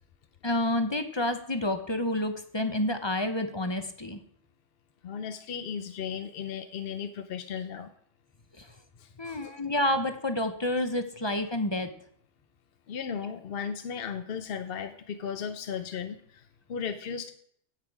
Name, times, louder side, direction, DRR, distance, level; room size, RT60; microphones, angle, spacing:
voice 1, 0.4-4.2 8.6-8.7 9.2-11.9, left 1 dB, 25° left, 8 dB, 0.8 m, -29 dB
voice 2, 5.0-7.9 9.0-9.6 12.9-17.3, left 7 dB, 55° left, 8 dB, 0.8 m, -36 dB
16.5 x 6.0 x 4.7 m, 0.66 s
omnidirectional pair, 1.3 m